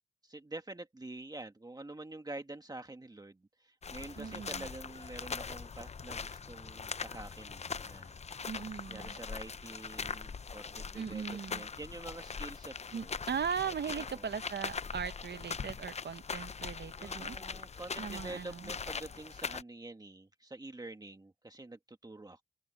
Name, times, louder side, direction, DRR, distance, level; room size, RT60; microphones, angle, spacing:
voice 1, 0.2-8.1 8.9-13.2 14.0-14.3 17.0-22.4, right 2 dB, 20° right, 1.5 m, -47 dB
sound 1, 3.8-19.6, left 5 dB, 35° left, 0.5 m, -42 dB
voice 2, 4.2-4.7 8.5-9.2 10.9-11.6 12.9-17.4 18.0-18.7, right 7 dB, 70° right, 1.0 m, -39 dB
open air
wide cardioid pair, 100°, 18 cm